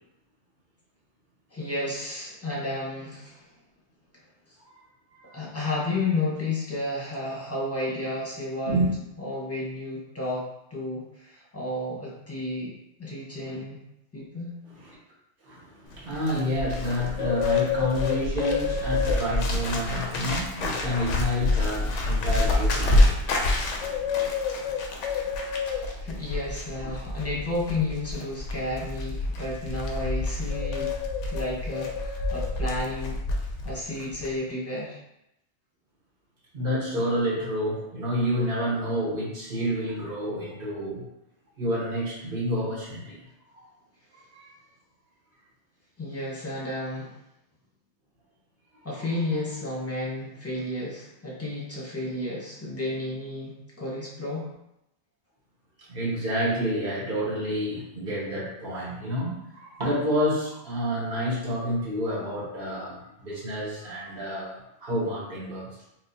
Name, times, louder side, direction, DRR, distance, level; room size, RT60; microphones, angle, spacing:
voice 1, 1.5-3.5 5.3-8.8 9.2-12.7 13.0-13.8 14.1-14.6 25.7-30.9 31.2-33.2 33.6-35.0 46.0-47.2 48.8-54.5, left 2 dB, 15° left, -5 dB, 0.9 m, -32 dB
voice 2, 15.4-23.2 23.9-24.1 24.5-24.6 25.3-25.4 36.5-41.0 41.6-43.2 43.5-43.7 44.3-44.5 49.3-49.4 55.9-65.7, equal, 50° right, -6 dB, 1.1 m, -29 dB
Bird, 15.9-33.7 34.0-34.3, left 3 dB, 85° left, 0.9 m, -27 dB
4.6 x 2.0 x 2.7 m, 0.83 s
omnidirectional pair, 1.2 m